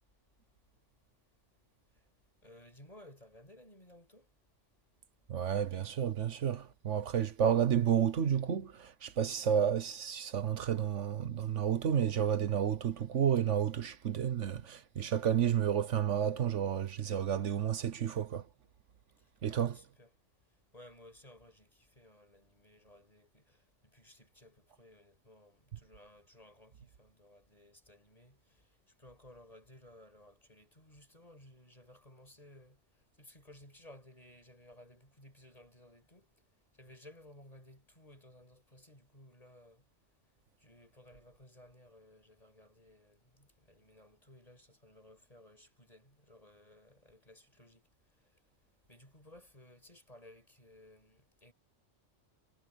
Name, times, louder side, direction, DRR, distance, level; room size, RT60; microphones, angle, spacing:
voice 1, 2.4-4.3 19.5-20.1 20.7-28.6 29.0-32.8 33.2-36.3 36.8-39.8 40.6-47.8 48.9-51.5, left 1 dB, 30° left, 6.9 m, -58 dB
voice 2, 5.3-18.5 19.4-19.7, right 9 dB, 75° right, 1.3 m, -31 dB
omnidirectional pair, 1.3 m